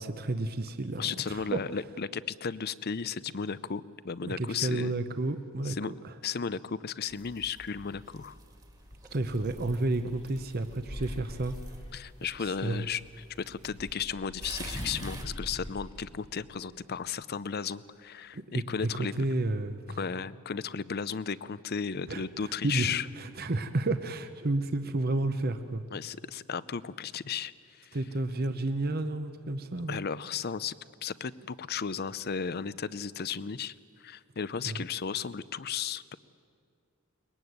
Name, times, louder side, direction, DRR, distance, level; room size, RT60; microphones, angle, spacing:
voice 1, 0.0-1.6 4.2-5.8 6.0-6.1 9.1-11.6 12.4-12.9 18.3-20.0 22.1-25.8 27.9-30.0 34.6-34.8, right 2 dB, 45° right, 9 dB, 0.9 m, -31 dB
voice 2, 1.0-4.9 5.6-5.9 6.2-8.4 11.9-19.1 20.0-23.1 25.9-28.0 29.9-30.7 31.0-36.2, left 6 dB, 50° left, 18 dB, 0.6 m, -35 dB
sound 1, 7.1-13.9 14.4-15.2, right 3 dB, 20° right, 1.9 m, -50 dB
sound 2, 8.4-8.5 8.9-12.5 13.5-17.1, left 1 dB, 30° left, 1.3 m, -43 dB
22.5 x 20.5 x 9.5 m, 2.2 s
head